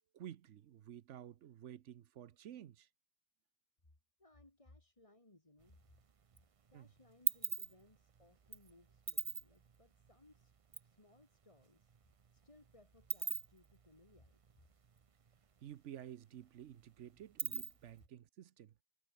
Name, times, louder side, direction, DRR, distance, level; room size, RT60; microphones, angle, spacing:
voice 1, 0.1-2.9 6.7-6.9 15.6-18.7, right 10 dB, 85° right, 1.1 m, -52 dB
voice 2, 4.2-5.8 6.7-10.5 10.8-11.9 12.3-14.6, left 2 dB, 30° left, 2.7 m, -66 dB
sound 1, 5.6-6.4 6.7-10.9 11.2-11.3 11.5-15.4 15.7-15.8 16.1-18.0, right 6 dB, 35° right, 0.6 m, -41 dB
omnidirectional pair, 1.2 m